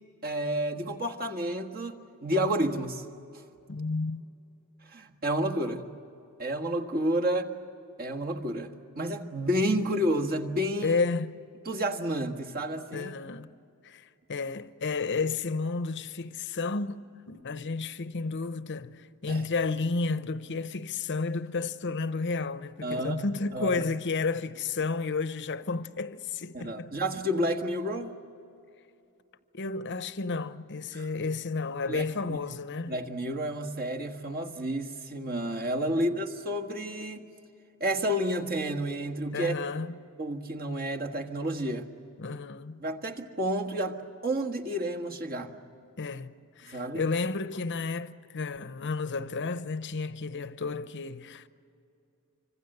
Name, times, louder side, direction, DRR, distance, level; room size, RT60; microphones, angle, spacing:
voice 1, 0.2-3.0 4.9-5.9 6.4-7.6 8.0-11.0 11.6-13.1 19.3-19.4 22.8-23.3 23.5-23.8 26.5-28.1 30.9-31.1 31.9-32.4 32.9-37.3 37.8-39.5 40.2-41.9 42.8-45.5 46.7-47.0, right 1 dB, 45° right, 1.7 m, -30 dB
voice 2, 3.7-4.2 10.8-11.4 12.9-13.5 13.8-26.9 29.5-33.0 35.8-36.0 39.3-40.0 42.2-42.8 46.0-51.5, left 4 dB, 55° left, 0.8 m, -32 dB
26.5 x 25.0 x 8.0 m
head